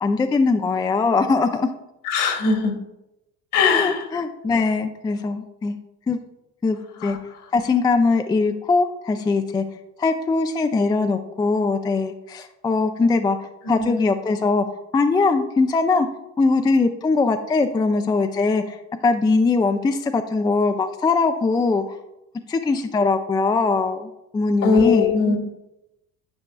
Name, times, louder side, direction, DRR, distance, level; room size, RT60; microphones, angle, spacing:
voice 1, 0.0-1.7 3.6-5.8 6.1-6.2 6.6-7.2 7.5-9.6 10.0-14.6 14.9-16.1 16.4-18.8 19.0-21.8 22.5-25.1, left 3 dB, 10° left, 7 dB, 0.3 m, -21 dB
voice 2, 2.1-2.7 3.5-4.0 7.0-7.2 13.9-14.0 24.6-25.4, left 5 dB, 60° left, 4 dB, 1.4 m, -20 dB
9.6 x 5.3 x 2.3 m, 0.89 s
supercardioid pair, 80°, 36 cm